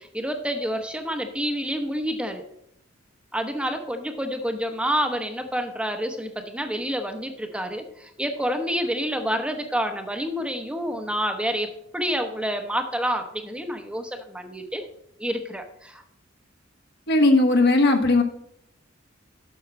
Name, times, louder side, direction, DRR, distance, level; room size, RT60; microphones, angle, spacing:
voice 1, 0.0-2.4 3.3-14.8 15.2-16.0, equal, 5° right, 5 dB, 0.8 m, -28 dB
voice 2, 17.1-18.2, left 2 dB, 60° left, 5 dB, 1.2 m, -17 dB
7.9 x 6.2 x 6.0 m, 0.74 s
head